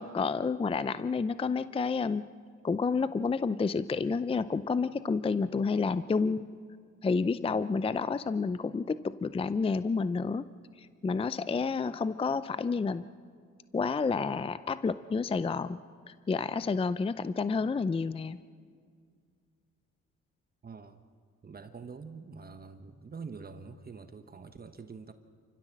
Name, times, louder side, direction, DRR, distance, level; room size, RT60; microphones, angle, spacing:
voice 1, 0.0-2.2 2.6-6.5 7.0-10.4 10.8-13.0 13.7-15.8 16.1-18.4, left 4 dB, 20° left, 15 dB, 0.5 m, -30 dB
voice 2, 20.6-21.0 21.4-25.1, right 5 dB, 30° right, 9 dB, 1.2 m, -45 dB
28.0 x 15.0 x 7.5 m, 2.1 s
cardioid pair, 90°, 30 cm